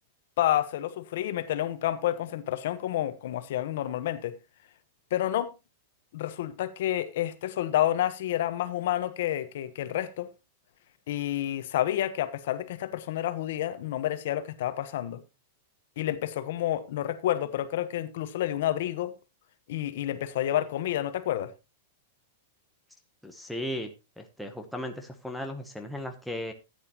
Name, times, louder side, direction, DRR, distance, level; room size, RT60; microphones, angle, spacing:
voice 1, 0.4-4.4 5.1-5.5 6.1-10.3 11.1-15.2 16.0-19.1 19.7-21.5, left 12 dB, 55° left, 1.0 m, -29 dB
voice 2, 23.2-23.9 24.2-26.5, left 1 dB, ahead, 0.9 m, -36 dB
14.0 x 9.1 x 2.9 m
supercardioid pair, 175°, 0 cm